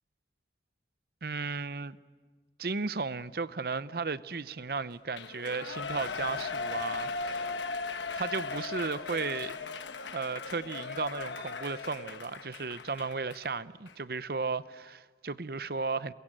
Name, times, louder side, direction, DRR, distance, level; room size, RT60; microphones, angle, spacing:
voice 1, 1.2-2.0 2.6-7.5 8.2-9.5 10.1-16.1, right 4 dB, 55° right, 0.7 m, -35 dB
Shout / Cheering, 5.1-13.5 13.9-14.0, left 4 dB, 85° left, 1.2 m, -37 dB
28.0 x 22.0 x 8.9 m
head